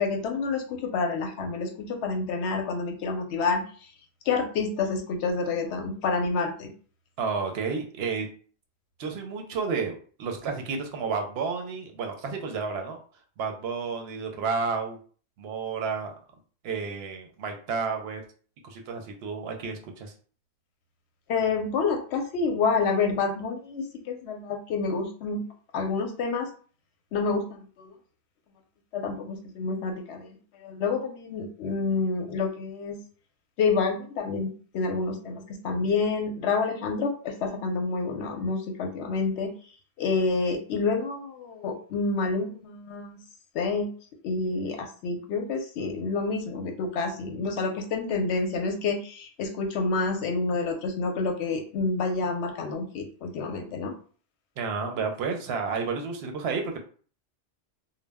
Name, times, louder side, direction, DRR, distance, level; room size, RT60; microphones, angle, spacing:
voice 1, 0.0-3.6 4.3-6.7 21.3-25.4 25.7-26.5 27.1-27.9 28.9-33.0 33.6-39.5 40.0-43.2 43.5-43.9 44.2-53.9, left 4 dB, 80° left, 4 dB, 0.8 m, -28 dB
voice 2, 7.2-8.3 9.0-13.0 13.4-15.0 15.4-16.1 16.6-18.2 18.6-20.1 54.6-56.8, right 5 dB, 70° right, 4 dB, 0.8 m, -31 dB
2.1 x 2.0 x 3.3 m, 0.42 s
omnidirectional pair, 1.1 m